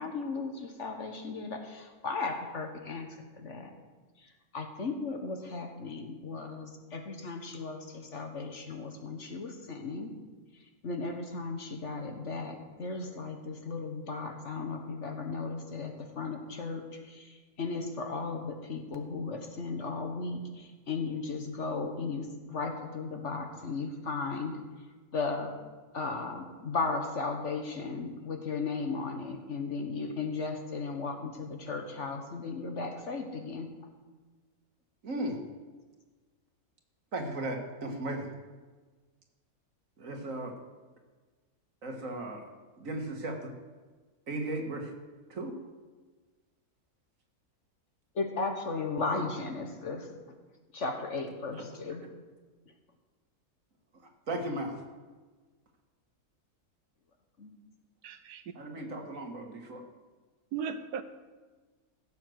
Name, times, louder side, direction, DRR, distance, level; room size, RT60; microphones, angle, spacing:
voice 1, 0.0-3.7 4.2-10.1 10.5-24.6 25.1-25.5 25.9-33.7 48.1-50.1 50.7-52.0 57.4-57.5, left 4 dB, 50° left, 5 dB, 1.5 m, -36 dB
voice 2, 35.0-35.4 37.1-38.3 40.0-40.6 41.8-42.4 42.8-43.5 44.3-44.9 45.3-45.6 51.5-51.7 52.0-52.1 54.3-54.8 58.6-59.8, right 1 dB, 55° right, 2 dB, 2.1 m, -36 dB
voice 3, 58.0-58.5 60.5-61.0, right 7 dB, 90° right, 11 dB, 1.3 m, -36 dB
16.0 x 7.2 x 6.4 m, 1.3 s
omnidirectional pair, 1.6 m